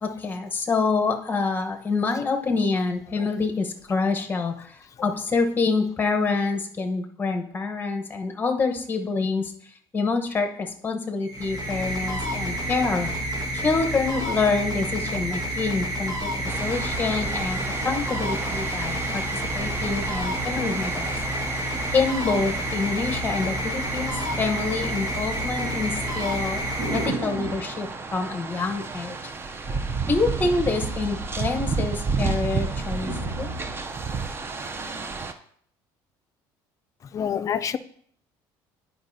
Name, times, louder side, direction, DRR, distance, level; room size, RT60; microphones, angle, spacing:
voice 1, 0.0-9.5 9.9-16.3 16.6-21.2 21.9-26.6 26.9-29.3 30.1-33.5, left 4 dB, 20° left, 0.9 m, -26 dB
sound 1, 11.2-27.7, equal, 45° right, 1.5 m, -29 dB
sound 2, 16.5-35.3, right 4 dB, 25° right, 0.5 m, -32 dB
sound 3, 21.7-22.9 23.5-23.7 24.1-24.6 24.9-27.7 28.8-29.4 29.7-32.0 32.3-32.4 32.7-33.8 34.5-34.6, right 1 dB, 60° right, 2.2 m, -36 dB
voice 2, 37.1-37.8, left 8 dB, 35° left, 0.4 m, -26 dB
10.5 x 4.8 x 2.7 m
cardioid pair, 110°, 9 cm